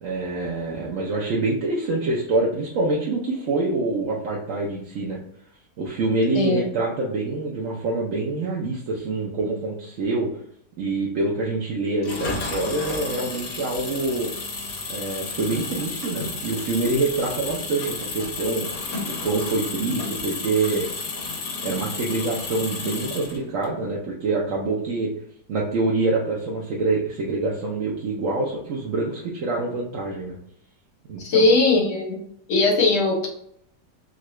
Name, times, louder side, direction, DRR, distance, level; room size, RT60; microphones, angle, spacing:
voice 1, 0.0-5.2 5.8-10.3 10.8-14.3 14.9-18.7 19.2-20.9 21.6-25.1 25.5-30.4 31.1-31.5, right 2 dB, 60° right, -4 dB, 0.9 m, -25 dB
voice 2, 6.3-6.7 31.2-32.2 32.5-33.3, left 3 dB, 55° left, -1 dB, 1.2 m, -19 dB
Engine, 12.0-23.7, left 3 dB, 75° left, 1.5 m, -32 dB
3.8 x 2.2 x 3.0 m, 0.69 s
omnidirectional pair, 1.8 m